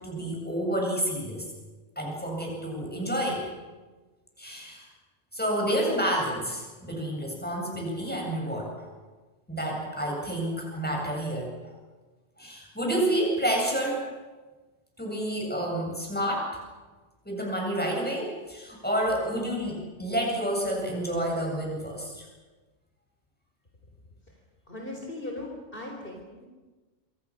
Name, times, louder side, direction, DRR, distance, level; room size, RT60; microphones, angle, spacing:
voice 1, 0.0-1.4 2.0-3.5 4.4-4.9 5.3-8.9 9.5-11.5 12.4-14.1 15.0-16.6 17.2-22.3, right 1 dB, 10° left, -1 dB, 7.9 m, -29 dB
voice 2, 24.7-26.5, left 1 dB, 50° left, 0 dB, 4.3 m, -38 dB
26.5 x 26.0 x 6.6 m, 1.3 s
omnidirectional pair, 1.2 m